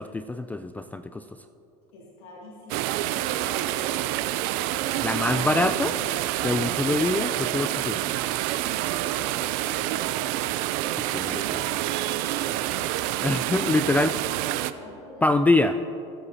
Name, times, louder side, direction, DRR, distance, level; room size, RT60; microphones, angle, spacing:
voice 1, 0.0-1.4 5.0-6.0 6.4-8.0 10.9-11.6 13.2-14.2 15.2-15.8, left 2 dB, 10° left, 10 dB, 0.3 m, -25 dB
voice 2, 1.9-5.1 8.7-10.2 11.2-12.7 14.4-15.3, left 1 dB, 70° left, -5 dB, 2.3 m, -45 dB
sound 1, 2.7-14.7, right 15 dB, 65° right, 0.5 m, -27 dB
21.5 x 8.4 x 2.8 m, 2.8 s
supercardioid pair, 100°, 16 cm